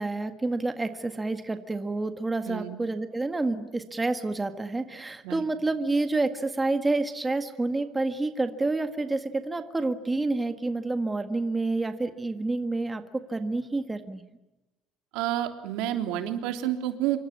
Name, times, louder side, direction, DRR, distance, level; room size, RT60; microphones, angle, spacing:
voice 1, 0.0-14.2, right 2 dB, 10° right, 8 dB, 1.7 m, -29 dB
voice 2, 2.5-2.8 5.2-5.5 15.1-17.2, right 12 dB, 85° right, 6 dB, 3.4 m, -29 dB
27.5 x 25.0 x 8.6 m, 1.0 s
cardioid pair, 155°, 0 cm